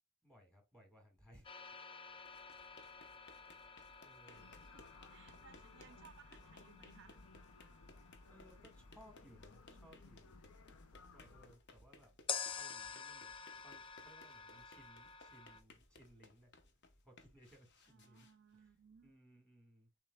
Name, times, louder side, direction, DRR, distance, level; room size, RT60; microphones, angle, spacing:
voice 1, 0.2-1.5 4.0-4.6 8.3-10.4 10.9-12.1 12.5-16.5 17.0-18.3 18.6-18.7 19.0-19.9, equal, 5° left, 1.6 m, -64 dB
sound 1, 1.4-9.4 12.3-15.6, left 6 dB, 25° left, 0.4 m, -49 dB
sound 2, 2.1-19.1, left 2 dB, 55° left, 0.9 m, -64 dB
voice 2, 4.2-7.2 17.9-19.1, right 7 dB, 55° right, 0.4 m, -64 dB
sound 3, 4.3-11.5, left 3 dB, 85° left, 0.6 m, -60 dB
6.4 x 3.2 x 2.2 m
head